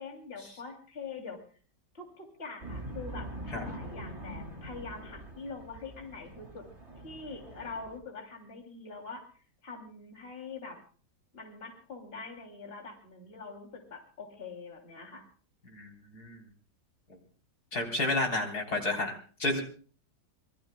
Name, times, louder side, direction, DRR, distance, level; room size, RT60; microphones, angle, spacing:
voice 1, 0.0-1.4 1.9-6.7 7.0-9.3 9.6-10.8 11.3-15.2, left 4 dB, 30° left, 2 dB, 3.0 m, -44 dB
sound 1, 2.6-8.0, right 1 dB, 40° right, 3.1 m, -43 dB
voice 2, 15.7-16.5 17.7-19.6, left 2 dB, 60° left, 1 dB, 4.2 m, -31 dB
26.0 x 22.0 x 2.2 m, 0.41 s
omnidirectional pair, 1.9 m